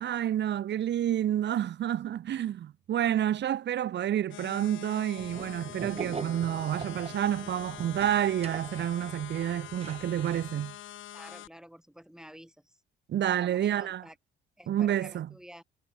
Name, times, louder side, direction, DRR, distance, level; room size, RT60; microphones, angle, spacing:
voice 1, 0.0-10.8 13.1-14.0 14.7-15.3, right 11 dB, 65° right, 1.2 m, -29 dB
sound 1, 4.3-11.5, left 13 dB, 75° left, 1.6 m, -45 dB
sound 2, 5.2-10.5, right 5 dB, 30° right, 1.7 m, -43 dB
voice 2, 11.1-12.8 13.4-14.2 14.6-15.6, equal, 5° right, 4.5 m, -50 dB
cardioid pair, 90°, 20 cm